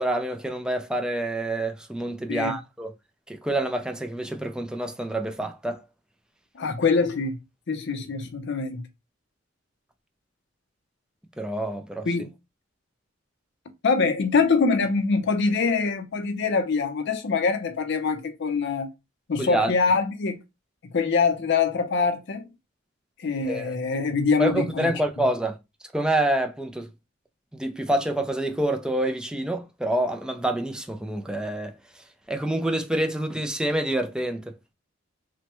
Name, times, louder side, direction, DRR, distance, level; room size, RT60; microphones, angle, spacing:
voice 1, 0.0-2.9 3.3-5.8 11.4-12.1 19.4-19.7 23.5-23.7 24.4-25.6 25.9-26.9 27.5-31.7 32.3-34.5, right 1 dB, 5° right, 0.3 m, -27 dB
voice 2, 6.6-7.4 7.7-8.9 12.1-12.3 13.8-18.9 19.3-20.4 20.9-22.5 23.2-25.2, left 4 dB, 60° left, 0.5 m, -24 dB
3.1 x 2.1 x 2.9 m
head